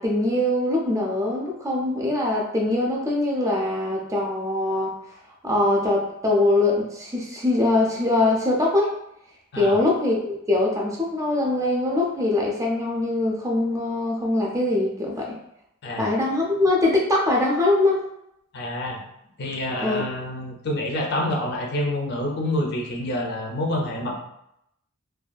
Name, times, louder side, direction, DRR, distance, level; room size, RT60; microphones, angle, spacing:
voice 1, 0.0-5.0 5.4-9.0 9.5-15.3 16.0-18.0 19.8-20.0, left 2 dB, 15° right, -2 dB, 0.4 m, -22 dB
voice 2, 18.5-19.0 19.4-24.1, left 1 dB, 55° left, 0 dB, 0.5 m, -27 dB
2.6 x 2.3 x 2.3 m, 0.80 s
head